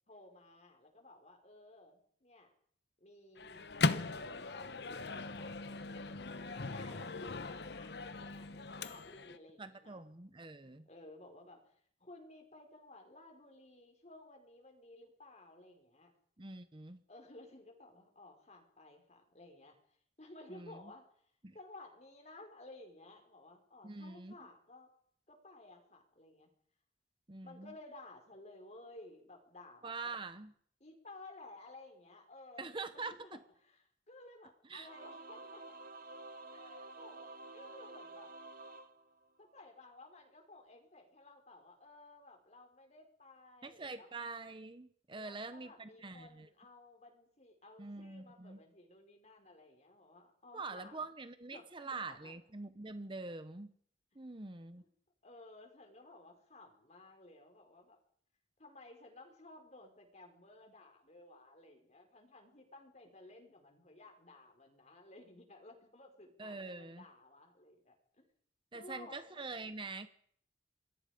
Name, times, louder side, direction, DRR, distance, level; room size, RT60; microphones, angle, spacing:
voice 1, 0.1-2.5 3.0-5.5 5.9-6.2 6.5-10.1 10.6-16.1 17.1-21.1 21.5-24.9 25.3-26.5 27.4-30.1 30.8-35.8 36.5-38.3 39.4-44.3 45.1-51.1 51.5-52.4 54.8-54.9 55.2-58.0 58.6-68.3 68.7-69.4, left 2 dB, 40° left, 4 dB, 5.2 m, -56 dB
Microwave oven, 3.4-9.4, left 3 dB, 65° left, 1.1 m, -38 dB
voice 2, 9.6-10.9 16.4-17.0 20.5-20.9 21.4-21.5 23.8-24.4 27.3-27.7 29.8-30.5 32.6-33.4 34.7-34.9 43.6-46.5 47.8-48.6 50.5-53.7 54.1-54.8 66.4-67.0 68.7-70.1, right 3 dB, 30° right, 11 dB, 1.0 m, -45 dB
Singing / Musical instrument, 34.8-39.7, right 2 dB, 55° right, 1.7 m, -51 dB
27.0 x 21.5 x 5.3 m, 0.63 s
head